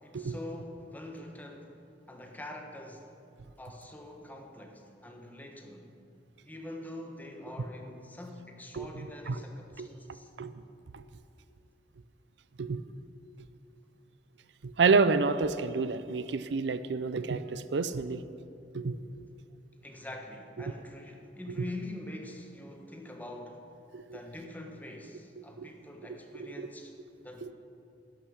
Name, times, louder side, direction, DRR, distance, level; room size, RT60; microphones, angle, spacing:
voice 1, 0.0-1.8 2.1-3.1 3.6-5.9 6.4-10.3 19.8-23.7 24.1-26.9 27.2-27.5, left 1 dB, 10° left, 2 dB, 1.2 m, -44 dB
voice 2, 14.6-18.2 18.7-19.0 21.6-21.7 23.9-24.2 25.6-25.7 26.4-26.7 27.4-27.5, right 4 dB, 80° right, 13 dB, 0.5 m, -29 dB
11.5 x 11.5 x 6.4 m, 2.6 s
head